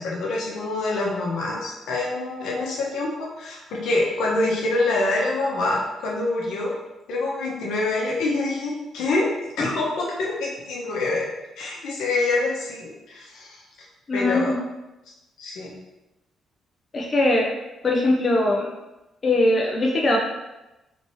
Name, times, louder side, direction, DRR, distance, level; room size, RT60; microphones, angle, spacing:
voice 1, 0.0-6.7 7.1-9.2 9.6-11.3 11.6-13.6 14.1-14.5 15.4-15.7, left 2 dB, 80° left, -3 dB, 0.9 m, -26 dB
voice 2, 14.1-14.6 16.9-17.5 17.8-18.7 19.2-20.2, left 2 dB, 40° left, -1 dB, 0.5 m, -21 dB
3.3 x 2.8 x 3.1 m, 0.99 s
cardioid pair, 90°, 0 cm